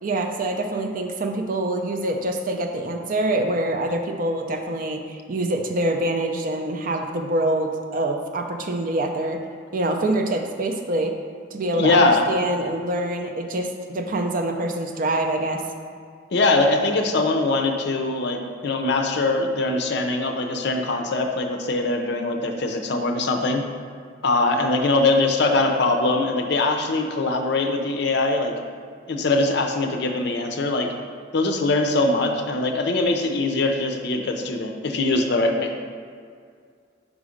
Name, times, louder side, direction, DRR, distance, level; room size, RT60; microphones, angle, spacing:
voice 1, 0.0-9.4 9.7-11.2 11.5-15.6, right 1 dB, 45° right, 4 dB, 0.5 m, -25 dB
voice 2, 11.7-12.3 16.3-23.7 24.2-28.5 29.1-30.9 31.3-35.7, left 2 dB, 60° left, 4 dB, 0.5 m, -22 dB
5.0 x 4.0 x 5.0 m, 2.1 s
head